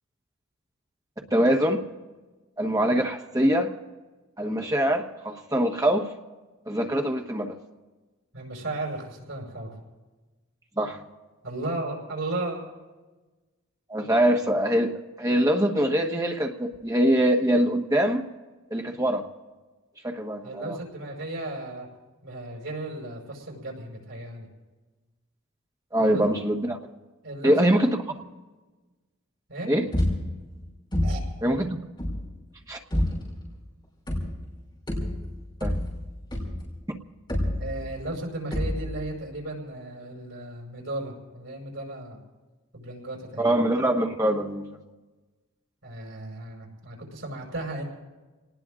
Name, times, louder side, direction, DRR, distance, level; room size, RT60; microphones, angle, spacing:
voice 1, 1.3-1.8 2.6-3.7 4.4-6.1 6.7-7.6 10.8-11.0 13.9-14.9 15.2-18.2 18.7-19.3 20.0-20.8 25.9-26.8 27.4-27.9 29.7-29.9 31.4-31.7 32.7-32.8 35.6-35.7 43.4-44.7, right 1 dB, 15° right, 2 dB, 1.2 m, -23 dB
voice 2, 8.3-9.7 11.4-12.6 20.4-21.9 22.2-24.5 26.0-26.3 27.2-27.8 29.5-29.7 31.0-31.2 37.6-42.2 42.7-43.6 45.8-47.8, right 2 dB, 70° right, -1 dB, 5.4 m, -35 dB
sound 1, 29.9-30.5 30.9-31.4 32.0-32.4 32.9-33.4 34.1-34.6 34.9-36.8 37.3-38.1 38.5-39.1, left 1 dB, 20° left, 5.5 m, -28 dB
29.5 x 19.0 x 2.5 m, 1.2 s
head